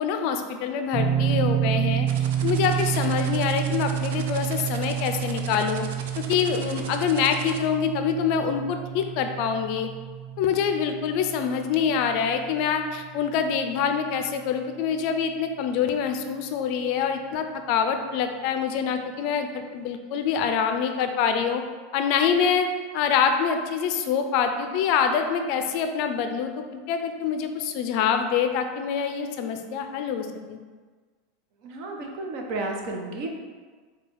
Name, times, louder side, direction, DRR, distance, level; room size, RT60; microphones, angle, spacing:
voice 1, 0.0-2.1 2.4-5.9 6.2-9.9 10.4-21.6 21.9-22.7 22.9-30.6, left 7 dB, 55° left, 6 dB, 0.4 m, -25 dB
sound 1, 0.9-13.8, right 10 dB, 10° right, 0.7 m, -29 dB
sound 2, 2.1-7.6, right 6 dB, 80° right, 0.5 m, -39 dB
voice 2, 31.6-33.3, right 2 dB, 55° right, 1 dB, 0.8 m, -32 dB
4.7 x 2.3 x 4.6 m, 1.5 s
supercardioid pair, 140°, 0 cm